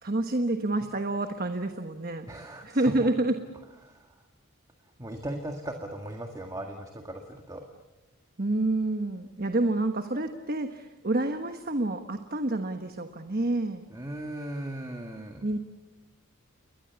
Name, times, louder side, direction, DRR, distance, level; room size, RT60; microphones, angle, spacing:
voice 1, 0.0-2.3 2.6-3.3 8.4-13.8 15.4-15.6, right 2 dB, 45° right, 7 dB, 1.2 m, -28 dB
voice 2, 2.3-3.1 3.8-4.2 5.0-7.7 13.9-15.5, right 1 dB, 15° right, 3 dB, 1.8 m, -38 dB
30.0 x 22.0 x 7.1 m, 1.0 s
head